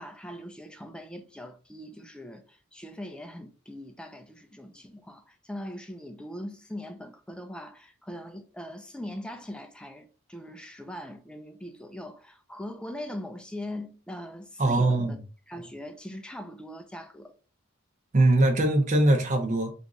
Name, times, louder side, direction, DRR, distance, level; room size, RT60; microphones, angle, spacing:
voice 1, 0.0-15.2 15.5-17.3, left 1 dB, 5° left, 0.4 m, -41 dB
voice 2, 14.6-15.2 18.1-19.7, right 2 dB, 35° right, 0.6 m, -21 dB
2.9 x 2.6 x 3.6 m
head